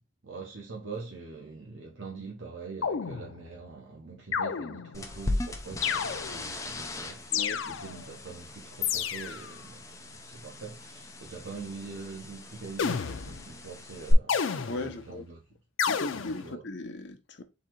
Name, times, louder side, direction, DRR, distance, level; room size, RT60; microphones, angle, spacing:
voice 1, 0.2-15.4 16.1-16.6, right 4 dB, 75° right, 0.9 m, -43 dB
sound 1, 2.8-3.6 4.3-5.1 5.8-6.6 7.3-8.1 8.8-9.6 12.8-13.6 14.3-15.1 15.8-16.5, left 7 dB, 85° left, 0.5 m, -31 dB
sound 2, 4.9-14.1, left 2 dB, 15° left, 0.6 m, -38 dB
voice 2, 7.3-7.6 14.6-15.2 15.9-17.4, left 2 dB, 60° left, 0.8 m, -38 dB
4.0 x 2.8 x 4.4 m
head